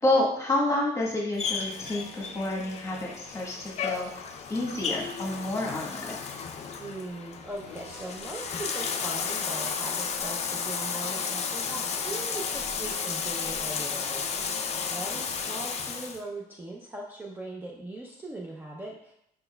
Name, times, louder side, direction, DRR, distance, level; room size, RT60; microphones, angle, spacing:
voice 1, 0.0-4.1 4.5-6.2, left 1 dB, 15° left, -2 dB, 1.2 m, -29 dB
Bathtub (filling or washing), 1.4-16.2, left 6 dB, 40° left, 0.5 m, -33 dB
Drill, 1.5-2.4 4.5-5.4 7.5-8.4 10.4-11.4, right 4 dB, 90° right, 0.8 m, -50 dB
voice 2, 6.8-19.1, right 2 dB, 10° right, -2 dB, 0.5 m, -40 dB
5.3 x 4.0 x 2.2 m, 0.74 s
cardioid pair, 110°, 17 cm